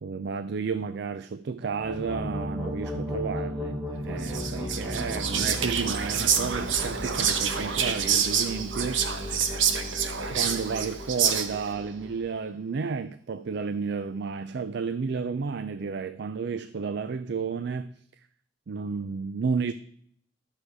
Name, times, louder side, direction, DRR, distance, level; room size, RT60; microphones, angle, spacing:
voice 1, 0.0-3.8 4.0-9.0 10.4-17.9 18.7-19.7, right 5 dB, 60° right, 0.4 m, -32 dB
sound 1, 1.6-12.3, left 1 dB, 15° right, 1.9 m, -35 dB
Whispering, 4.2-11.8, right 7 dB, 80° right, 1.0 m, -28 dB
12.0 x 6.5 x 4.8 m
head